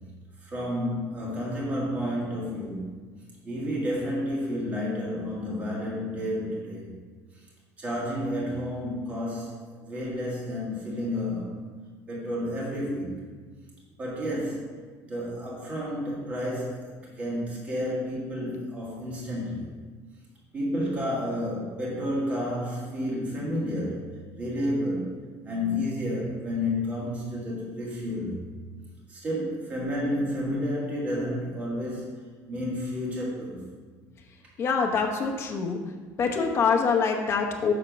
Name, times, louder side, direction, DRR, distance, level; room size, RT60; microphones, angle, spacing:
voice 1, 0.4-2.9 3.4-7.0 7.8-11.7 12.1-13.2 14.0-14.8 15.1-19.7 20.5-24.1 24.4-25.2 25.4-28.4 29.1-32.1 32.5-33.6, left 1 dB, 20° right, -5 dB, 1.8 m, -31 dB
voice 2, 34.6-35.8 36.2-37.7, left 5 dB, 40° left, 2 dB, 0.9 m, -25 dB
6.9 x 4.3 x 5.2 m, 1.5 s
cardioid pair, 150°, 7 cm